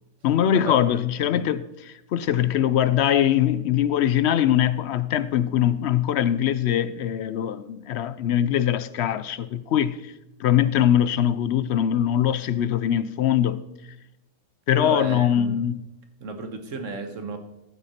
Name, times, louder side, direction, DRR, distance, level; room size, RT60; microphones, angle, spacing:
voice 1, 0.2-10.1 10.4-13.6 14.7-15.8, left 10 dB, 65° left, 0.8 m, -22 dB
voice 2, 14.7-15.6 16.2-17.4, right 4 dB, 85° right, 1.6 m, -33 dB
13.5 x 7.8 x 4.3 m
omnidirectional pair, 1.3 m